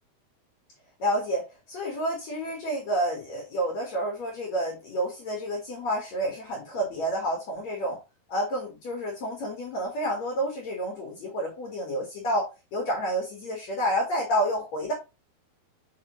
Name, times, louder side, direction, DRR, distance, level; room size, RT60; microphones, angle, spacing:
voice 1, 1.0-1.4 1.7-8.0 8.3-14.9, equal, 55° left, -1 dB, 2.0 m, -29 dB
5.9 x 5.7 x 3.0 m, 0.27 s
omnidirectional pair, 4.9 m